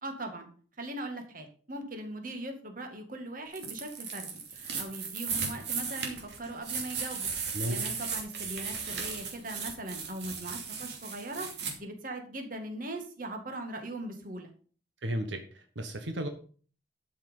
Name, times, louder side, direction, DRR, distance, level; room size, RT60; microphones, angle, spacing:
voice 1, 0.0-0.5 0.8-11.5 11.8-14.5, right 1 dB, 50° right, 4 dB, 2.2 m, -40 dB
sound 1, 3.5-11.7, right 6 dB, 65° right, 2.7 m, -36 dB
voice 2, 15.0-16.3, right 1 dB, 85° right, 6 dB, 1.4 m, -34 dB
12.0 x 6.0 x 5.6 m, 0.42 s
head